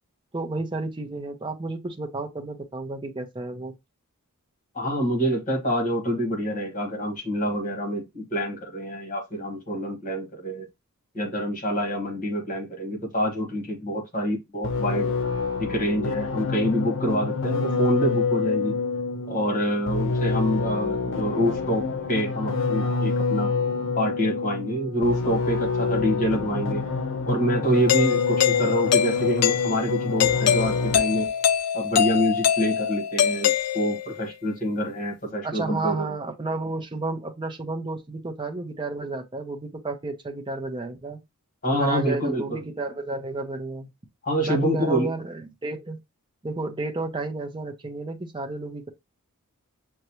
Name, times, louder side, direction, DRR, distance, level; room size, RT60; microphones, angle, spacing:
voice 1, 0.3-3.7 35.4-41.2 41.7-43.9 44.5-46.0 46.4-48.9, right 2 dB, 20° right, 0.7 m, -31 dB
voice 2, 4.7-10.7 11.1-15.1 15.6-18.7 19.3-23.5 24.0-26.8 27.2-31.3 31.7-36.2 41.6-42.6 44.2-45.1, equal, 35° left, 1.6 m, -26 dB
sound 1, 14.6-31.3, left 4 dB, 60° left, 0.7 m, -27 dB
Doorbell, 27.9-34.2, left 9 dB, 85° left, 0.3 m, -24 dB
6.4 x 2.2 x 2.9 m
head